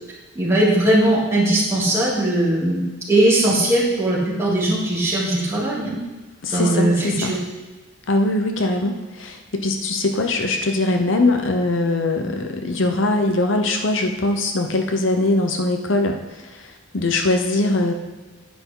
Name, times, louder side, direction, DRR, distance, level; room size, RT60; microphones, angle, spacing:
voice 1, 0.3-2.8 3.1-6.0 6.5-7.4, right 1 dB, 15° right, -7 dB, 3.0 m, -19 dB
voice 2, 6.4-7.4 8.1-16.2 16.5-17.9, left 2 dB, 65° left, 5 dB, 0.8 m, -21 dB
9.9 x 9.6 x 3.9 m, 1.2 s
head